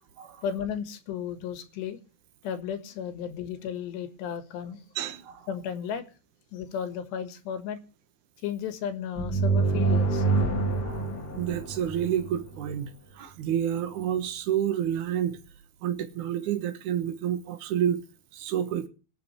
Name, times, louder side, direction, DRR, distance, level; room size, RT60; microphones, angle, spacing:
voice 1, 0.4-2.0 2.4-4.8 5.5-6.0 6.5-7.8 8.4-10.2, left 8 dB, 70° left, 3.3 m, -34 dB
voice 2, 5.0-5.5 10.3-10.4 10.8-11.1 11.3-15.4 15.8-18.0 18.3-18.9, right 10 dB, 75° right, 1.8 m, -29 dB
sound 1, 9.2-12.7, right 3 dB, 50° left, 1.2 m, -26 dB
24.5 x 8.8 x 3.2 m
omnidirectional pair, 5.6 m